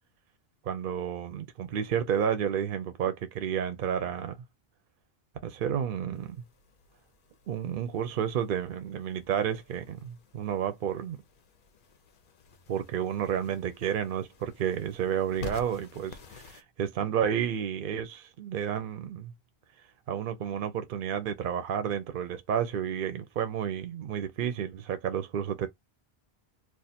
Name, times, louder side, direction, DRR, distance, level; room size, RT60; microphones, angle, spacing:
voice 1, 0.6-4.4 5.4-6.4 7.5-11.2 12.7-19.3 20.1-25.7, right 8 dB, 60° right, 0.7 m, -31 dB
sound 1, 6.1-16.6, left 5 dB, 60° left, 0.8 m, -50 dB
2.5 x 2.4 x 4.1 m
omnidirectional pair, 1.0 m